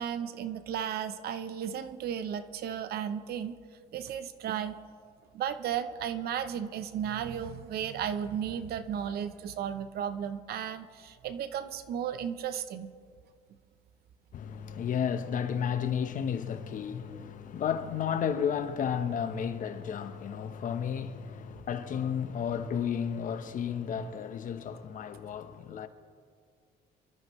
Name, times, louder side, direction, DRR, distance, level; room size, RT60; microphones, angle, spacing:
voice 1, 0.0-3.6 3.9-4.8 5.3-12.9, right 9 dB, 65° right, 0.8 m, -34 dB
voice 2, 14.3-25.9, left 8 dB, 50° left, 1.0 m, -32 dB
25.5 x 13.0 x 3.2 m
cardioid pair, 110°, 17 cm